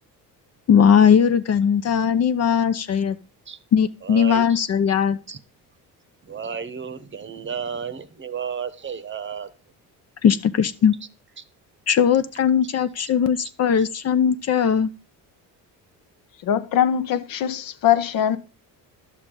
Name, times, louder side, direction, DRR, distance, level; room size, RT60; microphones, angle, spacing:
voice 1, 0.7-3.2 3.7-5.2 10.2-11.0 11.9-14.9, left 7 dB, 45° left, 0.6 m, -19 dB
voice 2, 4.0-4.6 5.3-5.4 6.2-9.5, right 6 dB, 30° right, 0.8 m, -32 dB
voice 3, 16.4-18.4, left 10 dB, 65° left, 0.9 m, -21 dB
11.0 x 6.7 x 3.7 m
cardioid pair, 100°, 37 cm